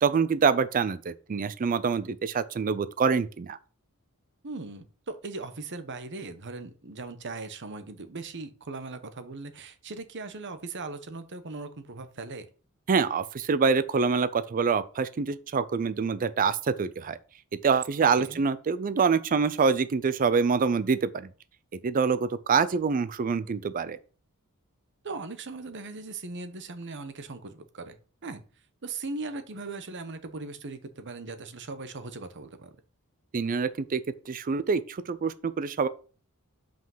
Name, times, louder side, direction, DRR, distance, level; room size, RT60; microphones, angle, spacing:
voice 1, 0.0-3.6 12.9-17.2 17.6-21.3 21.8-24.0 33.3-34.0 34.3-35.9, right 5 dB, 40° right, 0.4 m, -25 dB
voice 2, 4.4-12.5 18.1-18.4 25.0-28.0 28.2-28.4 28.8-32.7, right 3 dB, 55° right, 1.0 m, -39 dB
5.7 x 5.2 x 5.5 m
head